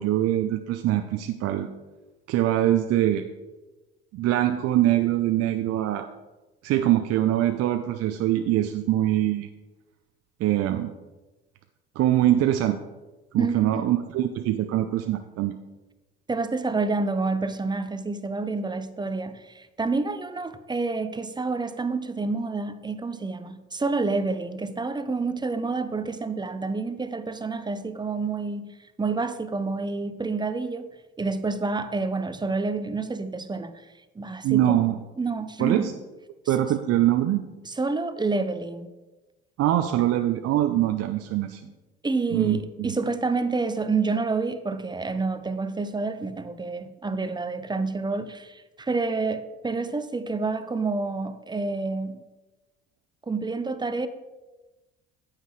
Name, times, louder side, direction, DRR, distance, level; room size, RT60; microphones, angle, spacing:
voice 1, 0.0-1.7 2.3-3.3 4.1-6.1 6.6-9.5 10.4-10.9 12.0-12.8 13.3-15.5 34.4-35.0 35.6-35.9 36.5-37.4 39.6-41.6 42.3-43.0, right 13 dB, 55° right, 0.6 m, -23 dB
voice 2, 13.4-13.9 16.3-28.7 29.0-30.9 31.2-33.8 34.2-35.9 36.5-36.6 37.7-38.9 42.0-52.2 53.3-54.1, right 3 dB, 15° right, 0.7 m, -28 dB
9.0 x 8.1 x 3.2 m
hypercardioid pair, 60°, 30 cm